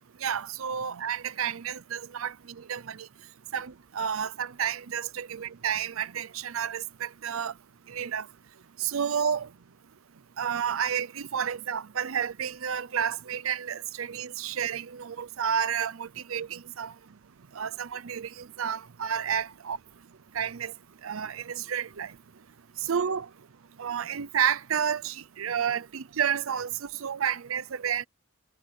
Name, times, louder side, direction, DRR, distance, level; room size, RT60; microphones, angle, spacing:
voice 1, 0.2-3.1 3.5-7.5 7.9-8.3 8.8-9.5 10.4-16.9 17.5-19.8 20.3-20.7 21.0-22.1 22.8-23.3 23.8-28.1, right 8 dB, 80° right, 0.6 m, -31 dB
head